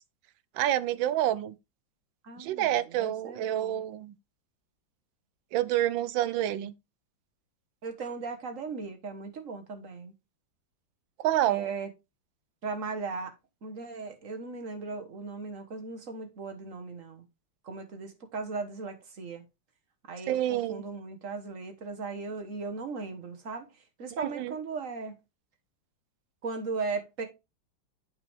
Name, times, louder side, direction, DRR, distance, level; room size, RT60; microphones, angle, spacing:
voice 1, 0.6-1.5 2.4-4.1 5.5-6.7 11.2-11.7 20.3-20.8 24.2-24.5, right 12 dB, 75° right, 1.3 m, -28 dB
voice 2, 2.2-3.8 7.8-10.1 11.4-11.9 12.6-13.3 13.6-17.2 17.6-19.4 20.1-23.7 24.0-25.2 26.4-27.3, right 4 dB, 45° right, 1.5 m, -37 dB
9.4 x 4.8 x 3.3 m
omnidirectional pair, 2.2 m